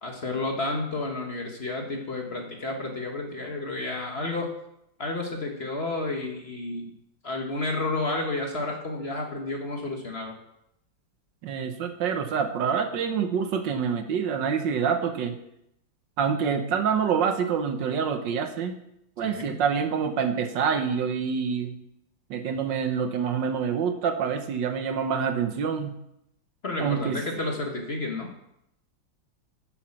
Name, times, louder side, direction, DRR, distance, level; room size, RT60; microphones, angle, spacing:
voice 1, 0.0-4.5 5.0-6.9 7.2-10.3 19.2-19.6 26.6-28.3, left 2 dB, 35° left, 1 dB, 1.3 m, -31 dB
voice 2, 11.4-15.3 16.2-18.8 19.2-21.7 22.3-25.9 26.8-27.2, right 6 dB, 75° right, 7 dB, 1.6 m, -26 dB
10.0 x 6.4 x 5.8 m, 0.79 s
omnidirectional pair, 2.1 m